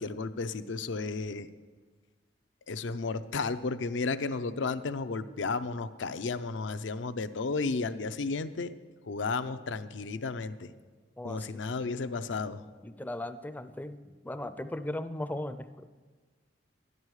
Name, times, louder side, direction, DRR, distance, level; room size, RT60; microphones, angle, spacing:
voice 1, 0.0-1.5 2.7-8.7 9.1-10.7 11.2-12.6, left 4 dB, 75° left, 11 dB, 0.5 m, -33 dB
voice 2, 11.2-11.9 12.8-15.9, left 1 dB, 10° left, 11 dB, 0.4 m, -38 dB
13.0 x 11.0 x 4.8 m, 1.4 s
head